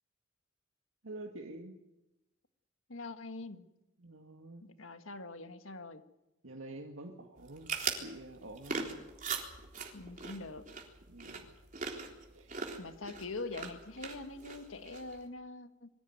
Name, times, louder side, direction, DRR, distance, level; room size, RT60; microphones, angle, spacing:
voice 1, 1.0-1.7 4.0-4.6 6.4-8.9 11.1-11.5 12.3-12.5, right 1 dB, 85° right, 1 dB, 2.1 m, -47 dB
voice 2, 2.9-3.7 4.6-6.0 9.9-10.7 12.8-15.9, left 3 dB, 80° left, 8 dB, 1.7 m, -44 dB
sound 1, 7.4-15.3, right 5 dB, 40° right, 3.7 m, -41 dB
23.0 x 16.0 x 9.4 m, 0.95 s
head